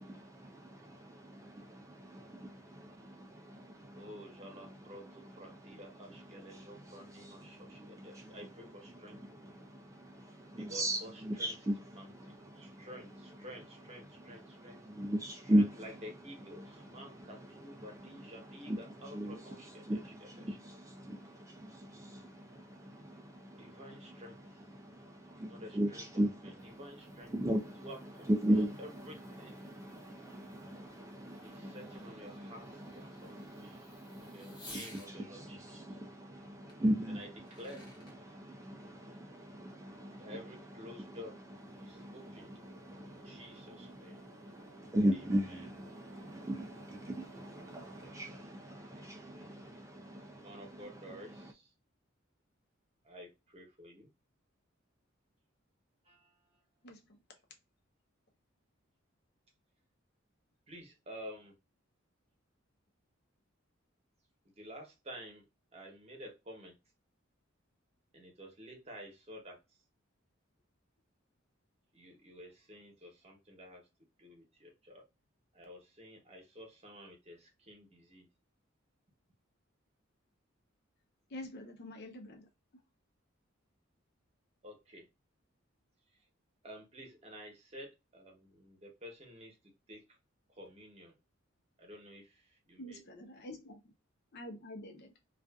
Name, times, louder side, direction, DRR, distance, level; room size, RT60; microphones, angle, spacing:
voice 1, 0.0-51.5, equal, 15° right, 0.4 m, -39 dB
voice 2, 3.9-9.5 10.6-11.1 11.4-11.5 11.9-14.8 15.5-20.0 20.5-20.6 23.6-24.6 25.5-26.0 26.8-27.3 27.8-28.3 28.8-29.5 31.4-33.9 34.2-35.8 37.1-37.3 37.6-37.8 40.2-41.3 41.8-42.5 43.1-44.2 48.3-48.5 48.9-49.5 50.3-51.7 53.0-54.1 56.0-56.4 60.7-61.5 64.6-65.4 65.7-66.7 68.1-69.6 71.9-73.8 74.2-75.0 75.5-78.3 84.6-85.1 86.6-89.6 89.9-90.0 90.5-91.1 91.8-93.0, equal, 30° right, 0.9 m, -51 dB
Fireworks, 26.5-35.1 36.7-36.8 37.3-38.2, left 2 dB, 20° left, 0.8 m, -57 dB
sound 1, 41.6-49.0, right 3 dB, 70° right, 0.6 m, -60 dB
voice 3, 56.8-57.2 81.3-82.5 92.8-93.8 94.3-95.1, left 1 dB, 55° left, 0.7 m, -47 dB
2.4 x 2.4 x 2.2 m
head